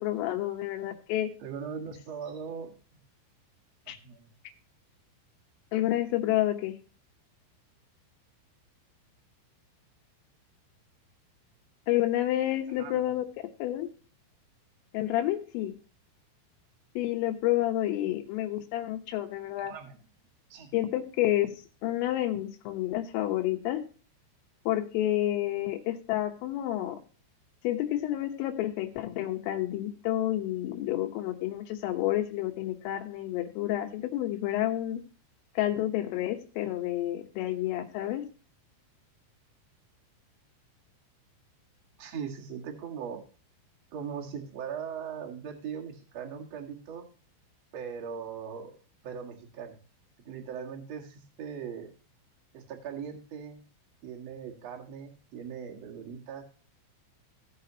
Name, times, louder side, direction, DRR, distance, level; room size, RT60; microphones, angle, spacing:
voice 1, 0.0-1.3 3.9-4.0 5.7-6.8 11.9-13.3 13.6-13.9 14.9-15.7 17.0-19.7 20.7-21.5 21.8-23.8 24.7-27.0 27.6-35.0 35.6-38.2, left 14 dB, 80° left, 6 dB, 3.7 m, -29 dB
voice 2, 1.4-2.7 3.9-4.3 12.7-13.0 19.6-20.0 20.5-20.7 42.0-43.2 43.9-47.1 47.7-48.8 49.0-49.8 50.3-51.9 52.5-53.6 54.0-56.4, right 7 dB, 55° right, 0 dB, 1.8 m, -40 dB
17.0 x 6.8 x 2.8 m, 0.38 s
omnidirectional pair, 5.8 m